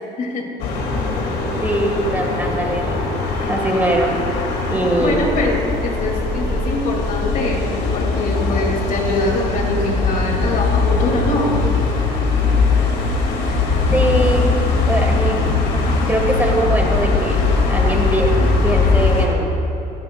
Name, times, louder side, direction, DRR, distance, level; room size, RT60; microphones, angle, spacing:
voice 1, 0.2-0.5 5.0-11.6, left 2 dB, 50° left, 1 dB, 2.2 m, -23 dB
sound 1, 0.6-19.3, left 3 dB, 85° left, 2.1 m, -20 dB
voice 2, 1.6-3.0 3.5-4.1 4.7-5.3 13.9-14.5 14.9-15.6 16.1-19.5, right 1 dB, 10° right, 1 dB, 1.4 m, -21 dB
16.5 x 15.5 x 2.2 m, 3.0 s
cardioid pair, 110°, 17 cm